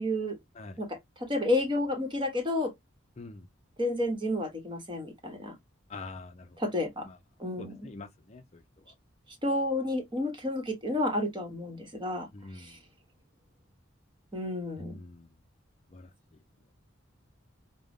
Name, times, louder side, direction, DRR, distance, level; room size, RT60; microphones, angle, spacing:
voice 1, 0.0-0.4 0.8-2.7 3.8-5.5 6.6-7.1 7.4-7.9 9.4-12.3 12.5-12.8 14.3-15.0, left 1 dB, 25° right, 1.1 m, -31 dB
voice 2, 5.9-6.5 7.0-7.1 7.6-8.6 12.3-12.7 15.0-15.3 15.9-16.1, left 3 dB, 30° left, 0.5 m, -44 dB
5.1 x 2.1 x 3.5 m
head